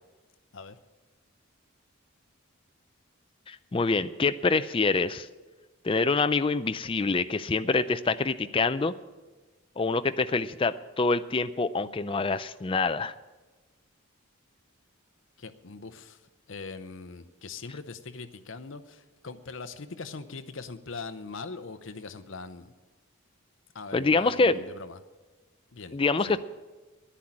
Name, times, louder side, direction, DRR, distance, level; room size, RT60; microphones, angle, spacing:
voice 1, 3.5-5.3 5.8-8.9 9.8-13.1 23.9-24.6 25.9-26.4, left 3 dB, 25° left, 12 dB, 0.4 m, -26 dB
voice 2, 15.4-16.2 16.5-22.7 23.7-25.0 25.7-26.0 26.3-26.4, left 4 dB, 60° left, 11 dB, 0.7 m, -41 dB
10.5 x 9.9 x 8.7 m, 1.2 s
head